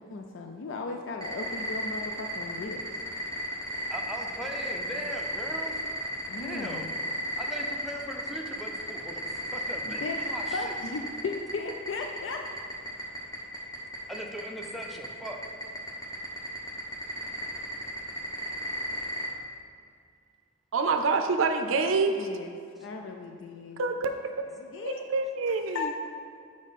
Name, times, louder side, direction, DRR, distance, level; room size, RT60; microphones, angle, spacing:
voice 1, 0.0-2.8 6.3-7.0 9.9-10.2 10.5-12.4 22.2-24.0 24.5-25.0 25.5-25.9, left 4 dB, 65° left, 3 dB, 0.4 m, -36 dB
sound 1, 1.2-19.3, equal, 20° left, 1.2 m, -33 dB
voice 2, 3.9-5.8 6.4-6.9 7.4-9.2 9.5-10.8 14.1-15.4, equal, ahead, -1 dB, 0.6 m, -39 dB
voice 3, 20.7-22.1 23.8-24.1 24.8-25.9, right 4 dB, 90° right, 6 dB, 0.5 m, -26 dB
7.1 x 4.8 x 4.1 m, 2.3 s
head